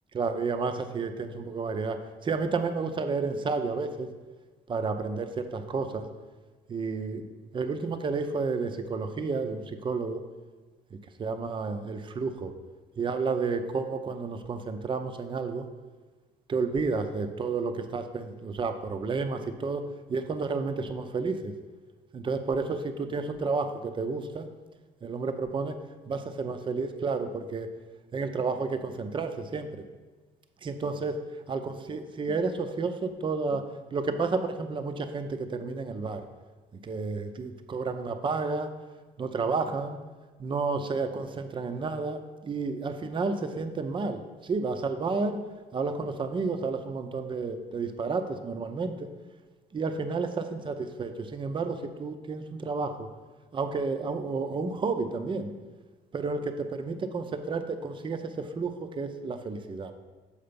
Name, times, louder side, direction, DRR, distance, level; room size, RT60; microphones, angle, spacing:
voice 1, 0.1-4.1 4.7-6.0 6.7-7.2 7.5-10.2 11.2-12.5 13.0-15.7 16.5-19.8 20.1-21.5 22.1-24.5 25.0-25.7 26.1-27.7 28.1-29.7 30.6-31.2 31.5-33.6 33.9-36.2 36.8-38.7 39.2-40.0 40.4-45.4 45.7-49.0 49.7-53.1 53.5-55.5 56.1-59.9, right 4 dB, 30° right, 8 dB, 0.6 m, -31 dB
6.7 x 4.9 x 5.2 m, 1.3 s
cardioid pair, 120°, 18 cm